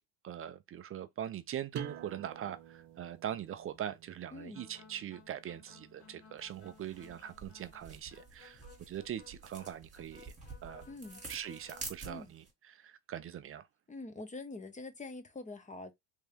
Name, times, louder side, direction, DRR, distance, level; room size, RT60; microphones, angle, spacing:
voice 1, 0.2-10.3 10.6-10.8 11.3-12.4 12.7-13.6, right 10 dB, 30° right, 0.3 m, -42 dB
sound 1, 1.7-7.1, right 8 dB, 55° right, 0.8 m, -51 dB
voice 2, 4.3-4.7 10.9-11.2 12.1-12.3 13.9-15.9, left 3 dB, 15° left, 0.6 m, -45 dB
sound 2, 4.5-11.9, left 5 dB, 55° left, 1.2 m, -59 dB
sound 3, 6.4-12.5, right 3 dB, 15° right, 1.6 m, -50 dB
3.6 x 2.7 x 3.3 m
cardioid pair, 110°, 49 cm